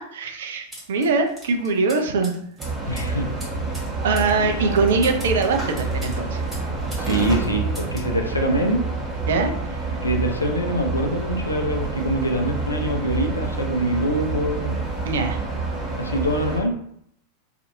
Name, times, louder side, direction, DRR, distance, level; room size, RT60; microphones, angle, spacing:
voice 1, 0.1-2.4 4.0-6.4 9.3-9.8 15.1-15.4, right 4 dB, 60° right, 5 dB, 0.4 m, -22 dB
sound 1, 0.7-7.1 7.4-8.1, right 1 dB, 10° right, 1.2 m, -42 dB
sound 2, 2.6-16.6, right 3 dB, 25° right, 1.0 m, -28 dB
voice 2, 2.9-3.3 4.4-5.1 7.0-8.8 10.0-14.8 16.0-16.8, right 1 dB, 80° left, 2 dB, 0.4 m, -24 dB
2.6 x 2.4 x 2.6 m, 0.69 s
figure-of-eight pair, 90°, 0 cm